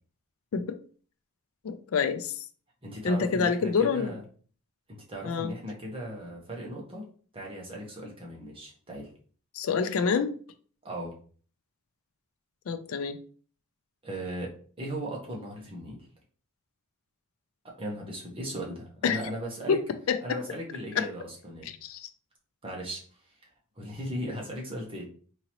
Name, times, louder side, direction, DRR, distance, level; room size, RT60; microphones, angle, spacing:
voice 1, 1.6-2.3 3.0-4.1 5.2-5.5 9.5-10.4 12.7-13.2 19.0-19.2 19.7-19.8 20.1-20.2 21.0-21.1 21.8-22.1, left 5 dB, 65° left, 10 dB, 0.4 m, -27 dB
voice 2, 2.8-4.2 4.9-7.1 7.3-9.1 10.8-11.1 14.0-16.1 17.6-19.8 20.2-21.7 22.6-23.0 23.7-25.1, right 1 dB, 25° right, -2 dB, 1.0 m, -37 dB
3.8 x 2.9 x 2.9 m, 0.43 s
head